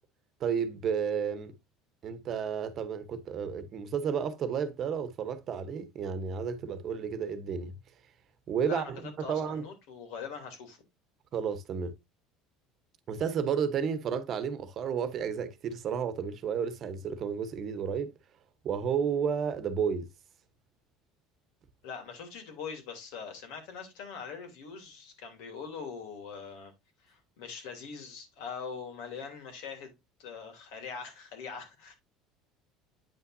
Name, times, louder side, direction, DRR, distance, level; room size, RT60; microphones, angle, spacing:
voice 1, 0.4-1.5 2.0-7.7 8.5-9.6 11.3-11.9 13.1-18.1 18.6-20.1, right 7 dB, 45° right, 1.0 m, -32 dB
voice 2, 9.2-10.8 21.8-26.7 27.0-29.9 30.2-31.9, left 6 dB, 75° left, 3.1 m, -42 dB
8.9 x 5.7 x 2.7 m
supercardioid pair, 115°, 0 cm